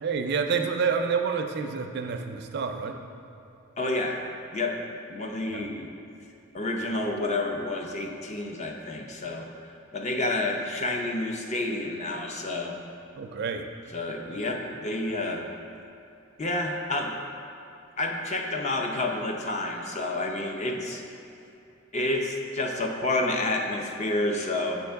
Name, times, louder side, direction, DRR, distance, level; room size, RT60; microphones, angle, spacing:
voice 1, 0.0-3.0 5.5-5.7 13.2-13.7, right 5 dB, 55° right, 6 dB, 0.4 m, -28 dB
voice 2, 3.8-4.2 4.5-4.8 5.1-5.9 6.5-9.5 9.9-12.8 13.9-15.4 16.4-17.2 18.0-21.0 21.9-24.8, left 2 dB, 35° left, 2 dB, 0.5 m, -29 dB
7.2 x 5.3 x 3.4 m, 2.8 s
head